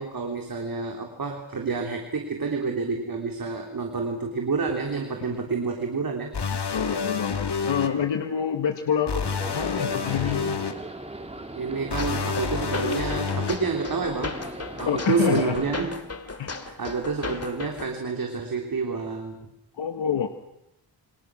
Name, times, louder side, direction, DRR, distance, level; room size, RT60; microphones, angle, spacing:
voice 1, 0.0-6.3 11.6-14.4 14.8-16.0 16.6-19.5, right 4 dB, 50° right, 2 dB, 3.6 m, -29 dB
sound 1, 6.3-7.9 9.1-10.7 11.9-13.6, left 5 dB, 65° left, 2.5 m, -28 dB
voice 2, 6.5-10.6 14.9-15.6 16.4-16.6 19.8-20.3, left 8 dB, 90° left, 5 dB, 1.7 m, -27 dB
sound 2, 9.2-15.8, right 1 dB, 15° right, 2.5 m, -38 dB
sound 3, 12.0-18.0, left 4 dB, 35° left, 2.6 m, -36 dB
29.0 x 25.0 x 6.3 m, 0.83 s
wide cardioid pair, 120°, 43 cm